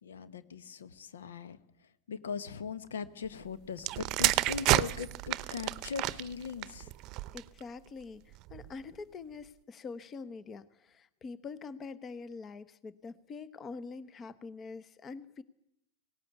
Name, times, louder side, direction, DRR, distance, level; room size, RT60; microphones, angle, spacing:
voice 1, 0.0-1.6 2.1-6.9, left 6 dB, 75° left, 15 dB, 1.2 m, -40 dB
sound 1, 3.8-7.6 8.4-8.7, right 16 dB, 45° right, 0.7 m, -30 dB
voice 2, 7.3-15.4, left 4 dB, 30° left, 17 dB, 1.0 m, -45 dB
18.5 x 18.0 x 8.2 m, 0.81 s
hypercardioid pair, 95°, 0 cm